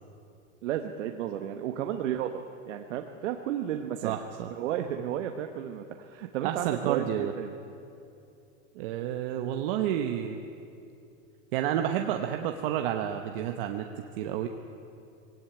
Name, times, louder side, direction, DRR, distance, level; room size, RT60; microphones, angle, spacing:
voice 1, 0.6-2.3 2.6-4.2 4.5-7.5, right 10 dB, 75° right, 5 dB, 1.3 m, -33 dB
voice 2, 3.7-4.5 6.4-7.3 8.7-10.4 11.5-13.9 14.2-14.5, right 10 dB, 45° right, 5 dB, 1.1 m, -30 dB
20.5 x 18.0 x 9.1 m, 2.6 s
supercardioid pair, 165°, 37 cm